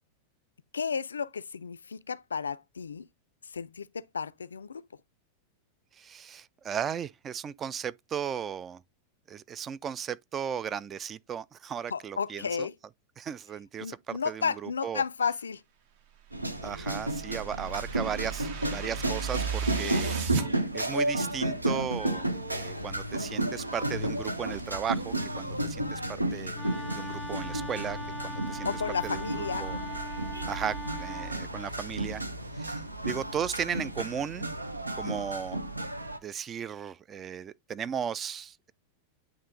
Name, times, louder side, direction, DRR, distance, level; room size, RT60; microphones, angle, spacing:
voice 1, 0.7-3.1 3.4-4.8 11.9-12.7 13.8-15.6 19.8-20.2 28.6-29.7, left 6 dB, 70° left, 0.3 m, -33 dB
voice 2, 5.9-8.8 9.3-12.7 13.2-15.0 16.6-20.2 20.7-26.5 27.0-28.0 28.2-28.7 29.0-29.3 29.6-29.8 30.5-32.2 32.6-34.5 35.0-35.6 36.2-38.7, right 8 dB, 25° right, 0.3 m, -36 dB
sound 1, 16.3-36.2, right 1 dB, 85° right, 0.7 m, -33 dB
sound 2, 16.4-20.5, right 6 dB, 50° right, 1.0 m, -35 dB
Wind instrument woodwind instrument, 26.5-31.4, equal, 5° left, 0.7 m, -40 dB
8.6 x 3.1 x 3.7 m
figure-of-eight pair, 90°, 0 cm